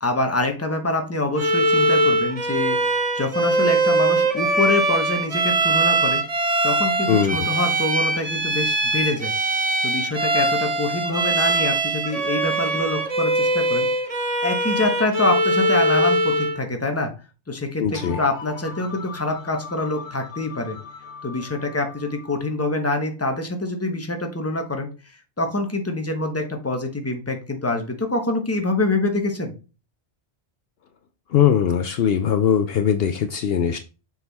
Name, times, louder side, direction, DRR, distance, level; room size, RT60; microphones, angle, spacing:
voice 1, 0.0-2.8 3.1-6.2 6.6-9.3 9.8-13.9 14.4-17.1 17.5-20.8 21.2-24.9 25.4-29.5, left 2 dB, 15° left, 4 dB, 1.0 m, -25 dB
Bowed string instrument, 1.4-16.6, right 2 dB, 35° right, 0.9 m, -22 dB
voice 2, 7.1-7.5 17.8-18.2 31.3-33.8, left 8 dB, 65° left, 9 dB, 0.7 m, -20 dB
sound 1, 17.9-22.5, left 4 dB, 90° left, 1.2 m, -39 dB
6.8 x 4.2 x 4.1 m, 0.33 s
omnidirectional pair, 1.1 m